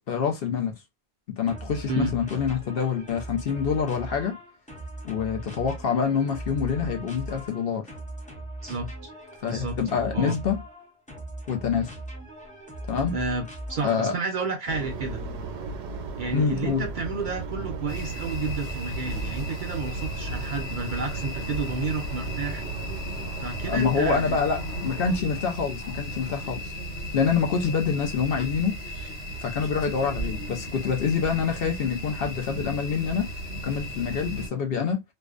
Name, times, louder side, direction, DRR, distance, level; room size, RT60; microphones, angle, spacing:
voice 1, 0.1-0.8 1.3-4.4 5.0-7.8 9.4-10.6 11.5-11.9 12.9-13.1 13.8-14.1 16.3-16.8 23.7-26.7 27.1-28.8 29.4-33.3 33.6-35.0, left 6 dB, 65° left, 0.7 m, -26 dB
sound 1, 1.5-14.2, right 1 dB, 10° left, 0.3 m, -39 dB
voice 2, 8.6-9.1 9.5-9.8 10.1-10.4 13.1-15.2 16.2-22.6 23.4-24.4, right 3 dB, 60° right, 0.5 m, -31 dB
sound 2, 14.7-25.2, right 3 dB, 80° right, 0.9 m, -36 dB
sound 3, 17.9-34.5, equal, 85° left, 1.3 m, -35 dB
2.5 x 2.1 x 2.3 m
omnidirectional pair, 1.2 m